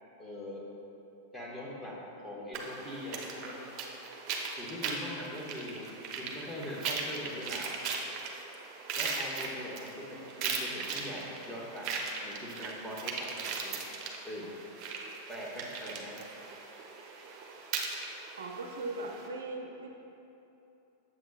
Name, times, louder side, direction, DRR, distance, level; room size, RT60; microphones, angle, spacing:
voice 1, 0.2-0.7 1.3-3.6 4.6-5.9 6.2-7.8 8.9-11.9 12.2-13.8 14.2-14.5 15.3-16.2, equal, 5° left, -5 dB, 1.5 m, -42 dB
sound 1, 2.5-19.3, right 4 dB, 40° right, 0.9 m, -39 dB
voice 2, 18.4-19.9, right 2 dB, 75° right, 2 dB, 0.6 m, -39 dB
7.9 x 7.6 x 2.4 m, 2.9 s
figure-of-eight pair, 95°, 0 cm